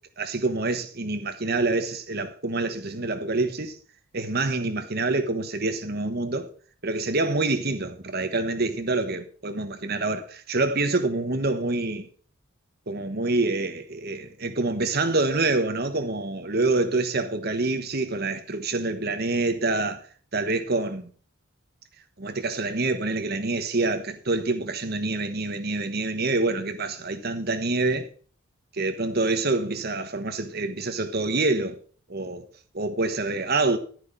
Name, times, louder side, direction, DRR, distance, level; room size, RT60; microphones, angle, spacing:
voice 1, 0.2-3.7 4.1-6.5 6.8-12.0 12.9-20.0 20.3-21.1 22.2-28.1 28.7-31.8 32.1-32.4 32.7-33.8, right 3 dB, 50° right, 1.2 m, -26 dB
11.0 x 9.5 x 4.1 m
head